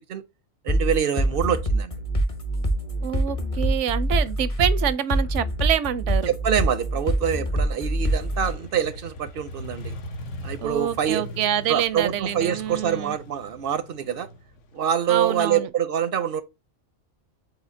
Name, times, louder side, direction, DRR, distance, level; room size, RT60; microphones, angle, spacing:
voice 1, 0.6-1.9 6.3-10.0 10.4-11.2 11.7-14.3 14.7-16.4, right 9 dB, 60° right, 0.6 m, -25 dB
sound 1, 0.7-8.5, right 1 dB, 35° left, 0.8 m, -24 dB
voice 2, 3.0-6.3 10.6-13.2 15.1-15.7, right 10 dB, 80° right, 0.9 m, -26 dB
Motorcycle, 8.0-15.6, left 1 dB, 80° left, 1.1 m, -40 dB
4.9 x 3.9 x 2.6 m
omnidirectional pair, 1.2 m